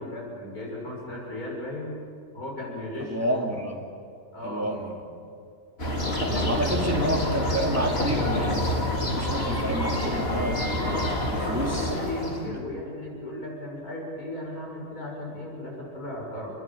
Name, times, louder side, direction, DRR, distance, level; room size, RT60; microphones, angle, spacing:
voice 1, 0.0-2.0 2.3-3.3 4.3-4.7 6.2-7.1 11.5-16.6, left 1 dB, 90° left, -2 dB, 7.3 m, -35 dB
voice 2, 3.0-3.9 4.4-4.9 6.4-8.7 9.2-11.9 12.5-12.6, right 1 dB, 10° right, 0 dB, 3.2 m, -30 dB
sound 1, 5.8-12.5, left 1 dB, 45° left, 3.5 m, -27 dB
29.5 x 22.5 x 8.8 m, 2.4 s
omnidirectional pair, 1.5 m